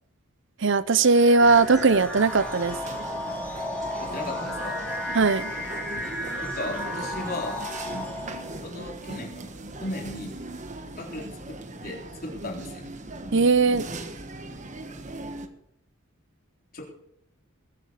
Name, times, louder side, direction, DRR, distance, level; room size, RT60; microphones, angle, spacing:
voice 1, 0.6-2.8 5.1-5.5 13.3-13.9, right 4 dB, 60° right, 16 dB, 0.7 m, -19 dB
sound 1, 1.1-8.7, left 1 dB, 5° left, 2.7 m, -34 dB
sound 2, 1.4-15.5, right 2 dB, 35° right, 1.2 m, -39 dB
voice 2, 4.0-4.8 6.5-7.6 7.9-8.3 8.6-9.5 9.8-10.3 11.0-11.6 11.8-12.0 12.4-12.9 16.7-16.8, left 1 dB, 45° left, -2 dB, 3.9 m, -36 dB
20.5 x 7.6 x 6.6 m, 0.78 s
head